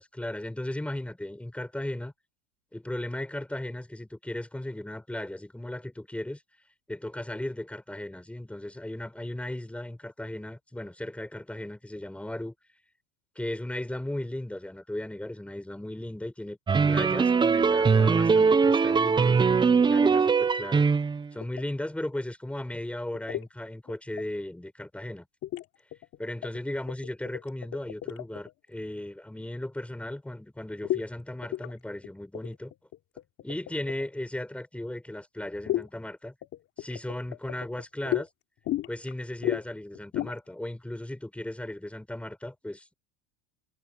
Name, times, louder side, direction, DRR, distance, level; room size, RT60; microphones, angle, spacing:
voice 1, 0.0-2.1 2.7-6.4 6.9-12.5 13.4-16.6 16.9-20.9 21.3-25.3 26.2-32.7 33.4-36.3 36.8-38.3 38.9-42.9, left 1 dB, 5° left, 5.8 m, -36 dB
sound 1, 16.7-21.3, right 5 dB, 15° right, 0.8 m, -21 dB
sound 2, 21.4-21.6 23.1-23.5 23.9-24.2 25.4-25.6 25.9-26.6 26.9-28.5 30.8-31.0 31.4-31.7 32.0-32.1 32.3-34.1 35.7-35.9 36.4-38.2 38.6-39.1 39.4-39.6 39.9-40.3, left 14 dB, 40° left, 3.3 m, -32 dB
supercardioid pair, 135°, 35 cm